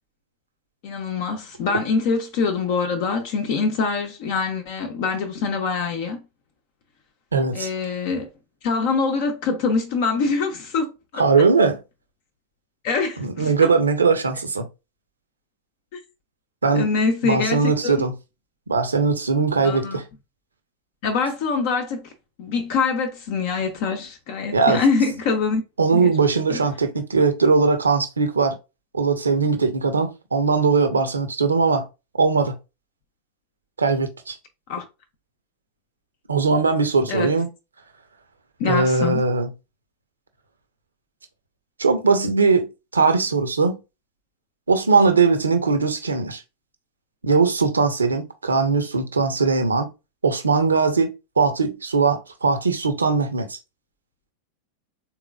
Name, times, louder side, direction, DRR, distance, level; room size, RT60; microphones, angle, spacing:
voice 1, 0.8-6.2 7.5-8.3 8.6-11.2 12.8-13.7 15.9-16.0 16.7-17.9 19.6-20.0 21.0-22.1 22.4-25.6 25.9-26.1 26.5-26.6 34.7-34.8 37.1-37.3 38.6-39.2, left 4 dB, 50° left, 0.6 m, -24 dB
voice 2, 7.3-7.7 11.2-11.8 13.2-14.7 16.6-16.9 17.2-18.1 18.7-20.0 24.5-24.8 25.8-28.6 28.9-31.9 32.2-32.6 33.8-34.4 36.3-37.5 38.6-39.5 41.8-43.8 44.7-46.4 47.2-49.9 50.2-53.6, right 4 dB, 75° right, 0.7 m, -20 dB
3.7 x 3.0 x 2.3 m
figure-of-eight pair, 90°, 0 cm